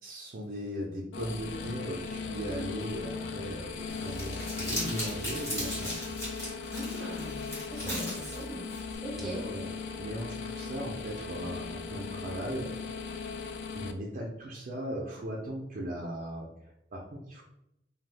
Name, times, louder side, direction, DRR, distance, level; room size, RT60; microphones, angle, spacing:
voice 1, 0.0-6.1 7.8-8.1 9.2-9.7 10.0-12.7 13.7-17.4, equal, 45° right, -2 dB, 0.5 m, -38 dB
sound 1, 1.1-13.9, left 5 dB, 70° left, 0.3 m, -38 dB
Crumpling crinkling, 3.9-9.0, equal, 15° left, 1.5 m, -38 dB
voice 2, 6.7-8.7 9.0-9.4, right 1 dB, ahead, -4 dB, 0.7 m, -40 dB
2.6 x 2.2 x 3.3 m, 0.81 s
head